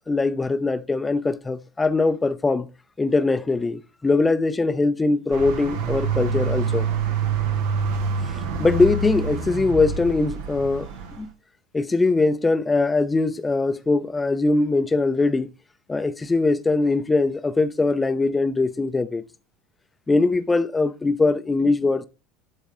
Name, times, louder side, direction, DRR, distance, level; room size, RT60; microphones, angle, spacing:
voice 1, 0.1-2.7 3.0-6.9 8.6-10.9 11.2-11.3 11.7-15.5 15.9-19.2 20.1-22.0, left 3 dB, 15° left, 0.8 m, -21 dB
sound 1, 5.3-11.2, right 5 dB, 65° right, 1.4 m, -26 dB
12.0 x 4.0 x 3.7 m
figure-of-eight pair, 70°, 0 cm